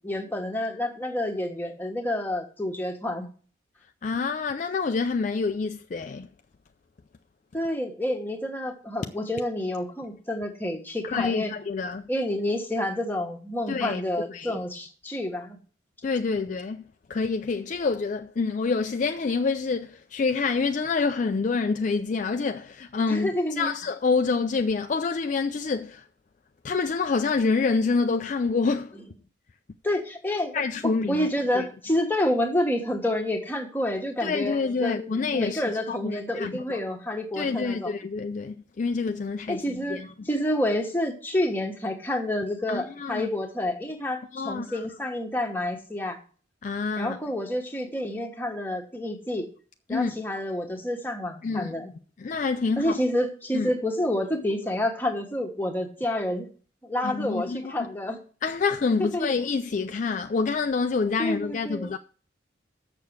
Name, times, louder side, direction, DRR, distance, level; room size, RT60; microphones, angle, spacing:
voice 1, 0.0-3.3 7.5-11.5 12.1-15.6 23.1-23.7 29.8-37.9 39.5-46.2 47.0-49.5 49.9-51.9 52.8-56.5 56.8-58.2 59.0-59.3 61.2-61.9, left 1 dB, 10° left, 1.3 m, -29 dB
voice 2, 4.0-6.3 11.0-12.1 13.7-14.0 14.3-14.6 16.0-16.8 17.1-23.3 23.6-26.0 26.6-29.0 30.5-31.3 31.5-31.7 34.2-36.8 37.3-40.1 42.7-43.3 44.3-44.9 46.6-47.2 49.9-50.1 51.4-51.7 52.2-53.0 53.5-53.7 57.0-57.9 58.4-62.0, left 4 dB, 40° left, 0.3 m, -27 dB
6.8 x 6.7 x 7.8 m
head